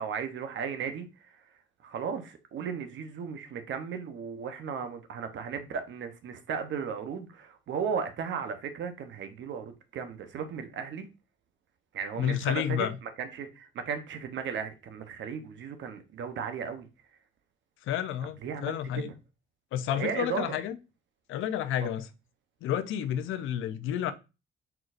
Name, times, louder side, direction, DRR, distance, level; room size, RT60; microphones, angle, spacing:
voice 1, 0.0-1.5 1.8-11.1 11.9-16.9 18.4-19.1 20.0-20.6 21.8-21.9, right 6 dB, 70° right, 0.9 m, -36 dB
voice 2, 12.2-13.0 17.8-19.1 19.7-20.8 21.3-22.1 22.6-24.1, left 10 dB, 85° left, 0.5 m, -30 dB
4.5 x 3.9 x 2.5 m
cardioid pair, 90°, 20 cm